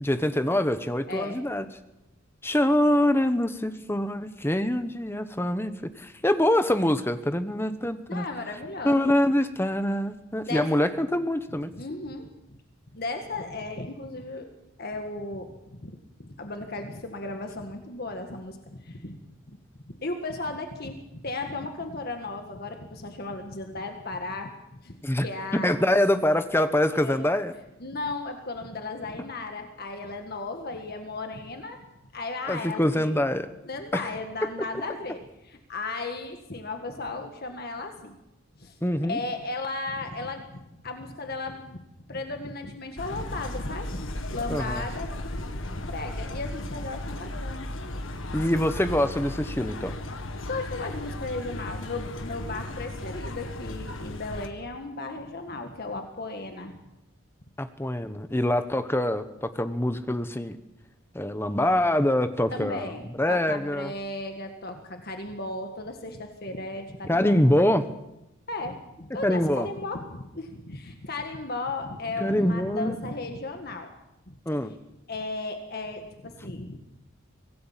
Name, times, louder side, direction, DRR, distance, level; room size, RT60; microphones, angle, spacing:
voice 1, 0.0-1.7 2.4-8.2 8.8-11.7 25.0-25.3 25.6-27.5 32.5-33.5 33.9-34.0 38.8-39.2 44.5-44.8 48.3-50.0 57.6-60.6 61.1-62.9 63.2-63.9 67.1-67.8 69.2-69.7 72.2-72.9 74.5-74.7, left 1 dB, 10° left, 10 dB, 1.1 m, -24 dB
voice 2, 1.1-1.4 8.1-9.1 10.4-10.9 11.8-12.3 12.9-14.5 14.8-19.6 19.9-24.5 24.8-24.9 25.2-25.8 26.9-27.2 27.8-31.8 32.1-33.2 33.6-38.1 38.6-38.8 39.0-41.8 42.1-47.7 50.5-56.8 62.5-67.4 68.5-73.9 74.3-74.4 75.1-76.8, left 2 dB, 50° left, 5 dB, 1.8 m, -35 dB
sound 1, 43.0-54.5, left 1 dB, 65° left, 1.8 m, -35 dB
25.0 x 17.5 x 7.4 m, 0.91 s
head